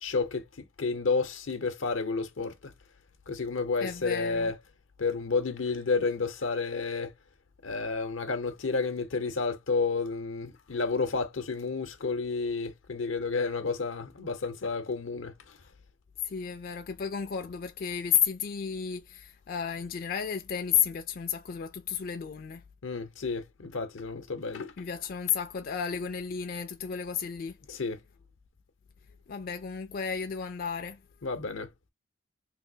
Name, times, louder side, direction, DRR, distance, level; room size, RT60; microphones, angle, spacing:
voice 1, 0.0-2.7 3.3-4.6 5.0-7.1 7.6-15.6 22.8-24.9 27.7-28.0 31.2-31.7, left 4 dB, 85° left, 0.7 m, -31 dB
voice 2, 3.8-4.5 16.2-22.6 24.8-27.6 29.3-31.0, left 8 dB, 50° left, 0.4 m, -32 dB
3.2 x 2.7 x 2.7 m
head